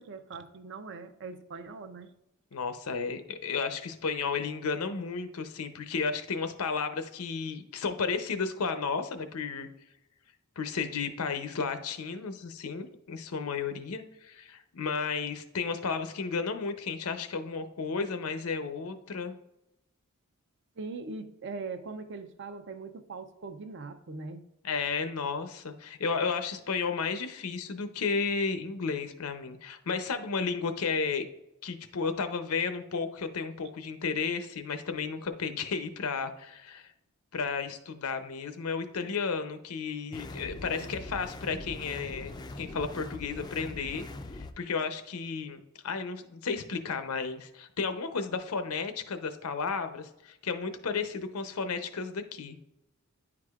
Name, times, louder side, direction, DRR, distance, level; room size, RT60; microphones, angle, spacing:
voice 1, 0.0-2.1 20.8-24.4 40.5-41.2, right 4 dB, 55° right, 0.5 m, -41 dB
voice 2, 2.5-9.7 10.6-19.3 24.6-31.3 31.6-36.9 37.3-44.0 44.3-52.6, left 5 dB, 85° left, 0.7 m, -33 dB
sound 1, 40.1-44.5, left 2 dB, 20° left, 0.3 m, -42 dB
9.8 x 4.8 x 2.4 m
head